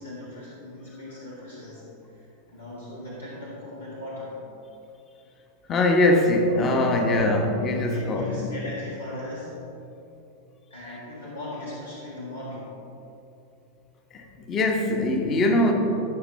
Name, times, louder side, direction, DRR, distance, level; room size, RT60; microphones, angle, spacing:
voice 1, 0.0-1.9 2.1-4.4 7.9-9.6 10.7-12.8, left 1 dB, 80° left, -7 dB, 1.8 m, -38 dB
voice 2, 5.7-8.5 14.1-15.7, left 1 dB, 30° left, 3 dB, 1.0 m, -22 dB
16.0 x 5.9 x 3.2 m, 2.9 s
figure-of-eight pair, 90°, 0 cm